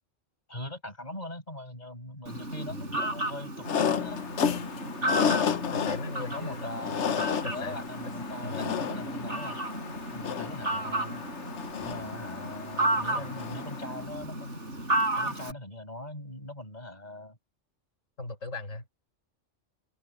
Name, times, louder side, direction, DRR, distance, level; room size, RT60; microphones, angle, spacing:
voice 1, 0.5-4.2 6.2-9.6 10.1-11.2 11.8-14.6 15.2-17.4, left 1 dB, 35° left, 7.1 m, -41 dB
Fowl, 2.3-15.5, right 1 dB, 65° right, 8.4 m, -33 dB
sound 1, 3.6-14.0, left 7 dB, 65° left, 1.2 m, -32 dB
voice 2, 5.7-6.8 7.4-8.1 8.4-8.7 13.1-13.3 18.2-18.9, left 3 dB, 90° left, 5.4 m, -38 dB
omnidirectional pair, 1.3 m